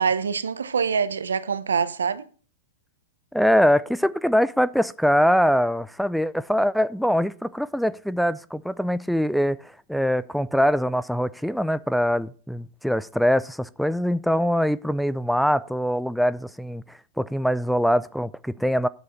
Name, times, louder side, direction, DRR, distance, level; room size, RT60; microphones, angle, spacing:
voice 1, 0.0-2.3, right 6 dB, 75° right, 0.7 m, -24 dB
voice 2, 3.3-9.6 9.9-16.8 17.2-18.9, equal, ahead, 0.4 m, -23 dB
10.0 x 7.6 x 5.3 m
figure-of-eight pair, 105°, 0 cm